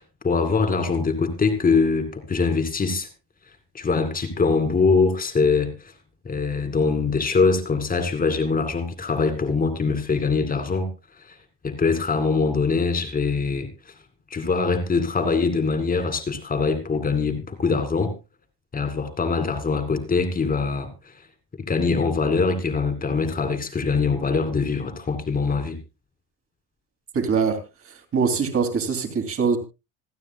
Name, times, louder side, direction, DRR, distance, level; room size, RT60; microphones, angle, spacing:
voice 1, 0.0-3.1 3.7-5.9 6.2-10.9 11.3-11.4 11.6-13.7 14.3-18.1 18.7-21.1 21.6-25.8, left 4 dB, 20° left, 2.4 m, -23 dB
voice 2, 27.1-27.6 28.1-29.6, right 5 dB, 30° right, 2.8 m, -22 dB
27.0 x 9.4 x 2.3 m
cardioid pair, 140°, 43 cm